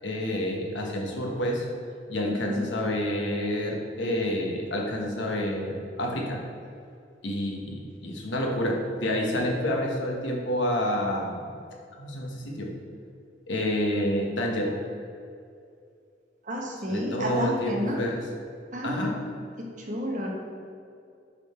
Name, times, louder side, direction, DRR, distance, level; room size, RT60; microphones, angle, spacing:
voice 1, 0.0-1.7 2.1-6.4 7.2-11.4 12.0-12.7 13.5-14.8 16.9-18.2 18.8-19.2, left 1 dB, 85° left, 0 dB, 1.1 m, -28 dB
voice 2, 2.3-2.6 16.4-18.0 18.7-19.1 19.6-20.3, equal, 45° right, -2 dB, 1.0 m, -30 dB
7.0 x 3.9 x 4.3 m, 2.4 s
head